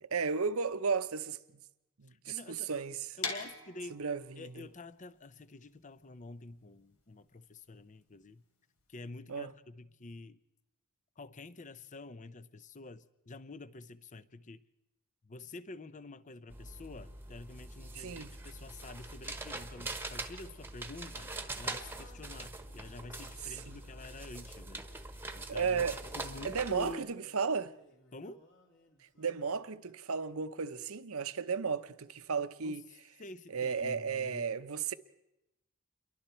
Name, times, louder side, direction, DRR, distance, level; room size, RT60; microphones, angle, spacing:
voice 1, 0.0-1.6 2.0-3.1 3.9-4.6 9.3-9.5 17.9-18.3 23.5-23.8 25.5-26.0 26.4-27.7 29.2-32.9 33.5-34.9, right 5 dB, 70° right, 0.9 m, -34 dB
voice 2, 2.1-2.7 3.2-4.0 4.4-8.4 8.9-10.4 11.2-14.6 15.2-24.9 25.3-25.8 26.1-27.2 28.1-28.4 32.6-32.8 33.2-34.5, left 3 dB, 35° left, 0.7 m, -48 dB
sound 1, 3.2-9.0, left 5 dB, 80° left, 3.5 m, -44 dB
sound 2, 16.5-26.9, right 2 dB, 10° right, 1.2 m, -43 dB
Singing, 21.0-29.6, left 1 dB, 55° left, 3.6 m, -63 dB
28.0 x 23.0 x 4.5 m
head